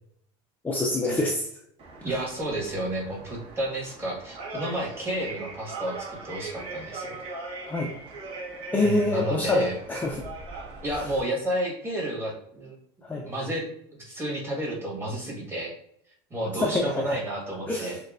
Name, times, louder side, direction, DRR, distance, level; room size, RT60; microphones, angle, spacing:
voice 1, 0.6-1.5 7.7-7.9 8.7-10.2 13.0-13.3 16.6-17.2 17.7-17.9, left 2 dB, 10° left, -2 dB, 0.5 m, -26 dB
sound 1, 1.8-11.2, right 3 dB, 40° right, 1.4 m, -40 dB
voice 2, 2.0-7.2 8.8-9.8 10.8-12.8 13.2-15.7 16.3-18.0, right 1 dB, 15° right, -3 dB, 1.6 m, -31 dB
6.4 x 2.3 x 2.5 m, 0.69 s
supercardioid pair, 125°, 14 cm